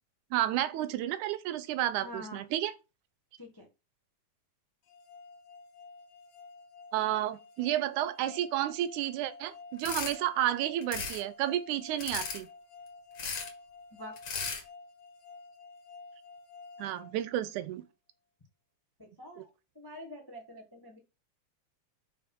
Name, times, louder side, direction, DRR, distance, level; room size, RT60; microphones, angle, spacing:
voice 1, 0.3-2.7 6.9-12.5 16.8-17.8 19.4-19.5, right 13 dB, 90° right, 2.1 m, -31 dB
voice 2, 2.0-2.4 3.4-3.7 13.9-14.4 19.0-19.5 19.7-21.0, equal, 20° left, 0.5 m, -46 dB
sound 1, 4.9-17.8, left 4 dB, 80° left, 1.0 m, -51 dB
sound 2, 9.8-10.1 10.8-11.2 12.0-12.4 13.2-13.5 14.2-14.6, left 5 dB, 45° left, 2.1 m, -36 dB
5.7 x 5.2 x 5.4 m
omnidirectional pair, 3.5 m